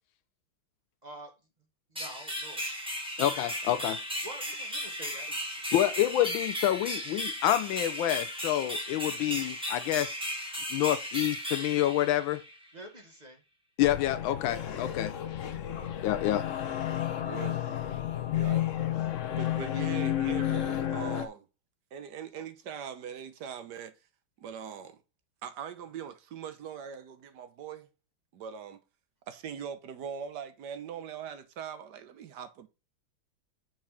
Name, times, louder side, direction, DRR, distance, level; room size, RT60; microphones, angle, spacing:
sound 1, 1.9-12.7, equal, 5° right, 1.2 m, -36 dB
voice 1, 1.9-2.7 4.2-5.3 5.6-6.0 12.7-13.4 22.3-22.4, right 1 dB, 25° right, 1.2 m, -47 dB
voice 2, 3.2-4.0 5.7-10.1 10.7-12.4 13.8-15.1 16.0-16.5, left 13 dB, 80° left, 1.3 m, -28 dB
sound 2, 13.8-21.3, left 11 dB, 60° left, 0.8 m, -31 dB
voice 3, 17.2-17.8 18.3-18.7 19.3-21.5 21.9-23.9 24.4-25.0 25.4-27.9 28.3-28.8 29.3-32.7, right 8 dB, 65° right, 1.3 m, -41 dB
6.1 x 4.5 x 5.7 m
omnidirectional pair, 2.2 m